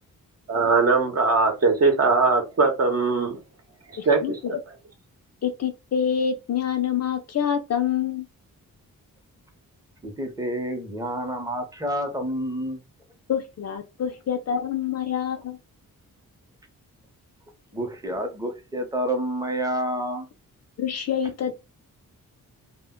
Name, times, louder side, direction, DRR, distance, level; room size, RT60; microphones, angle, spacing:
voice 1, 0.5-3.4 3.9-4.5, right 4 dB, 45° right, 0.8 m, -21 dB
voice 2, 4.0-4.5 5.4-8.3 13.3-15.6 20.8-21.5, left 8 dB, 50° left, 0.5 m, -26 dB
voice 3, 10.0-12.8 17.7-20.3, right 1 dB, 10° right, 0.7 m, -29 dB
2.1 x 2.0 x 3.6 m
wide cardioid pair, 125°, 35 cm